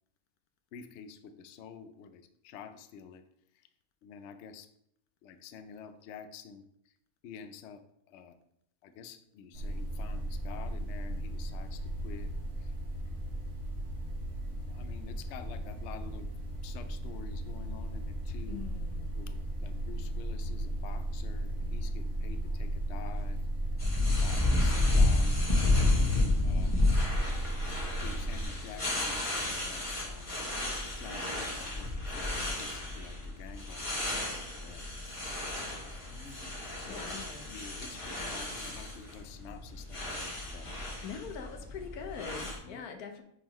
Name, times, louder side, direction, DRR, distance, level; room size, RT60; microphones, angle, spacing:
voice 1, 0.7-3.2 4.0-4.7 5.2-6.6 7.2-7.8 8.1-8.3 8.8-12.3 13.0-13.2 14.6-16.3 16.6-18.6 19.2-23.4 24.2-25.3 26.2-26.7 28.0-30.7 31.0-34.8 36.1-36.5 36.8-37.0 37.5-40.7 42.6-42.8, left 6 dB, 65° left, 9 dB, 0.7 m, -48 dB
sound 1, 9.5-28.5, right 1 dB, 65° right, 1.5 m, -35 dB
voice 2, 18.5-19.1 36.9-37.5 41.0-43.2, left 6 dB, 85° left, 5 dB, 1.3 m, -43 dB
sound 2, 23.8-42.6, left 2 dB, 25° left, 1.1 m, -31 dB
9.3 x 3.8 x 3.0 m, 0.74 s
omnidirectional pair, 1.5 m